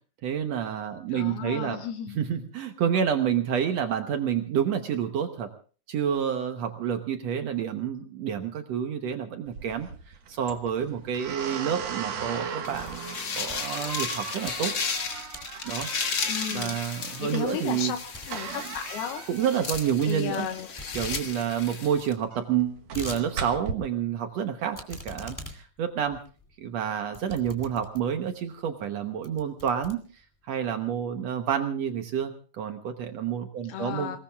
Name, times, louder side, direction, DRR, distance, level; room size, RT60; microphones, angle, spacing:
voice 1, 0.2-1.8 2.1-5.5 5.9-13.0 13.3-14.7 15.6-15.9 16.5-17.9 18.5-18.6 19.3-20.5 20.9-26.2 26.6-34.2, right 8 dB, 80° right, 6 dB, 1.5 m, -29 dB
voice 2, 1.1-2.2 16.3-18.0 18.3-19.2 20.0-20.7 33.7-34.2, left 9 dB, 80° left, 5 dB, 3.0 m, -34 dB
sound 1, 9.5-23.7, right 6 dB, 55° right, 2.1 m, -38 dB
sound 2, 12.1-13.1 13.4-14.5 15.0-15.5 15.8-16.0 16.6-17.0 17.3-17.4 17.7-17.8 18.1-18.3 18.6-18.9 19.7-20.5 20.8-21.3 21.6-21.7 21.9-22.0 22.5-23.2 23.7-23.8 24.7-28.2 28.8-28.9 29.2-30.5, left 1 dB, 10° left, 1.1 m, -42 dB
sound 3, 12.6-22.1, left 5 dB, 55° left, 1.2 m, -34 dB
28.0 x 19.0 x 2.4 m, 0.39 s
omnidirectional pair, 4.5 m